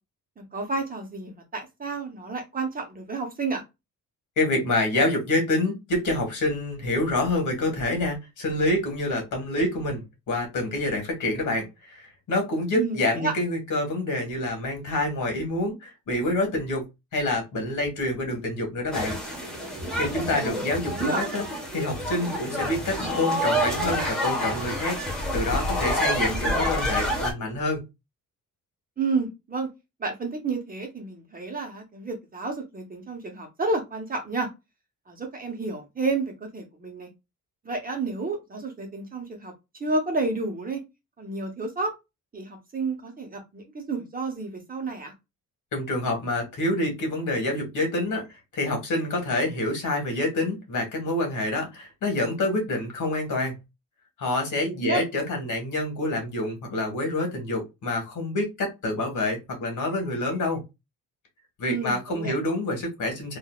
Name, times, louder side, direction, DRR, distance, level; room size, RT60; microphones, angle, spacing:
voice 1, 0.4-3.6 12.7-13.3 20.3-20.7 20.9-21.2 29.0-29.7 30.0-34.5 35.1-37.1 37.6-39.5 39.8-40.8 41.2-41.9 42.3-45.1 54.6-55.0 61.7-62.3, right 3 dB, 25° right, 3 dB, 1.0 m, -30 dB
voice 2, 4.4-16.9 17.1-19.2 19.9-21.4 21.7-25.0 25.3-27.8 45.7-48.3 48.5-53.6 54.2-60.6 61.6-63.4, left 2 dB, 60° left, 3 dB, 1.6 m, -27 dB
sound 1, 18.9-27.3, equal, ahead, 1.2 m, -28 dB
3.8 x 2.6 x 2.3 m, 0.23 s
cardioid pair, 140°, 34 cm